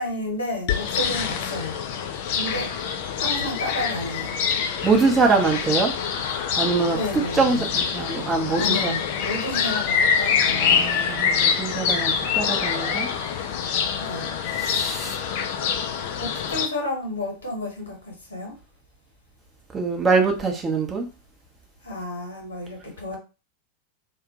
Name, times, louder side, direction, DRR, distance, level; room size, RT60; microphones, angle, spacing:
voice 1, 0.0-1.8 2.4-2.7 3.1-4.4 6.9-7.7 8.5-10.9 14.0-14.3 16.2-18.5 21.8-23.2, left 1 dB, 75° left, 0 dB, 1.0 m, -31 dB
sound 1, 0.7-16.7, left 7 dB, 50° left, 0.3 m, -25 dB
voice 2, 4.8-5.9 6.6-7.0 7.3-8.9 10.5-13.1 14.6-15.1 19.7-21.1, right 4 dB, 20° right, 2 dB, 0.6 m, -23 dB
2.1 x 2.1 x 2.8 m, 0.31 s
figure-of-eight pair, 90°, 0 cm